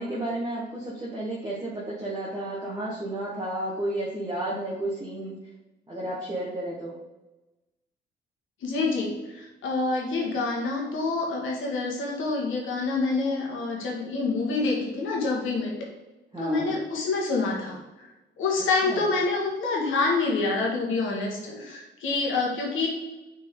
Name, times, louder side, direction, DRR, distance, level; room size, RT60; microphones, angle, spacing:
voice 1, 0.0-5.3 5.9-7.0 16.3-16.8 18.8-19.0, right 1 dB, 20° right, -6 dB, 1.5 m, -32 dB
voice 2, 8.6-15.7 16.4-18.1 18.4-22.9, left 3 dB, 80° left, -1 dB, 1.9 m, -27 dB
6.3 x 4.2 x 3.8 m, 1.1 s
cardioid pair, 90°, 20 cm